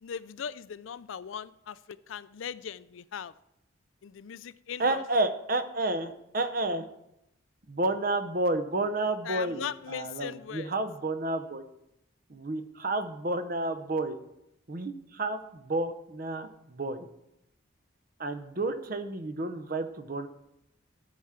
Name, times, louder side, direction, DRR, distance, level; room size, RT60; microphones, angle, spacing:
voice 1, 0.0-3.3 4.0-5.0 9.2-10.7, left 7 dB, 75° left, 16 dB, 0.4 m, -39 dB
voice 2, 4.8-6.9 7.7-11.6 12.3-14.2 14.7-17.1 18.2-20.3, right 2 dB, 45° right, 10 dB, 0.7 m, -31 dB
13.5 x 4.9 x 5.8 m, 0.83 s
head